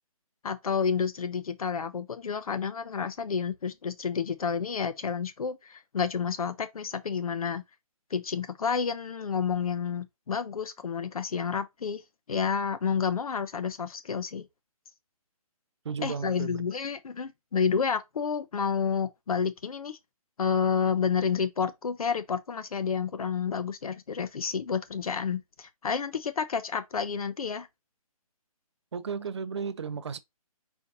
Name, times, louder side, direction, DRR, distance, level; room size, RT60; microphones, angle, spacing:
voice 1, 0.4-7.6 8.1-12.0 12.3-14.5 16.0-20.0 20.4-27.7, left 6 dB, 70° left, 0.8 m, -30 dB
voice 2, 15.8-16.6 28.9-30.2, right 6 dB, 50° right, 0.5 m, -34 dB
4.4 x 4.0 x 2.8 m
hypercardioid pair, 170°, 19 cm